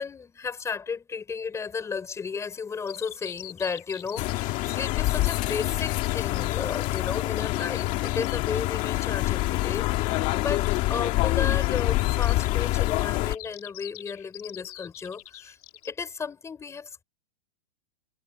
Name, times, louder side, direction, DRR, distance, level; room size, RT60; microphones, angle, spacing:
voice 1, 0.0-15.6 15.8-17.0, left 5 dB, 15° left, 6.0 m, -34 dB
Bird vocalization bird call bird song, 2.9-15.9, left 15 dB, 70° left, 4.3 m, -45 dB
sound 1, 4.2-13.3, left 19 dB, 40° left, 2.0 m, -26 dB
supercardioid pair, 145°, 20 cm